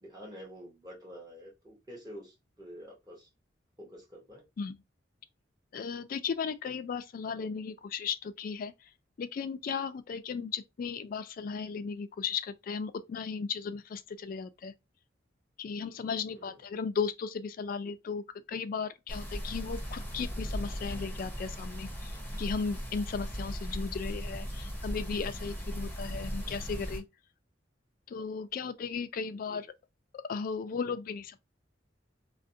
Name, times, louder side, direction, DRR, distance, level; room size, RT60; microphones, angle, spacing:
voice 1, 0.0-3.3 3.8-4.4 16.3-16.6 29.3-29.6, equal, 20° right, 0.8 m, -48 dB
voice 2, 5.7-8.7 9.2-14.7 15.6-18.2 18.5-22.1 22.4-27.0 28.1-29.7 30.3-31.4, left 5 dB, 50° left, 0.3 m, -36 dB
sound 1, 19.1-27.0, equal, 10° left, 0.6 m, -37 dB
2.5 x 2.1 x 2.6 m
head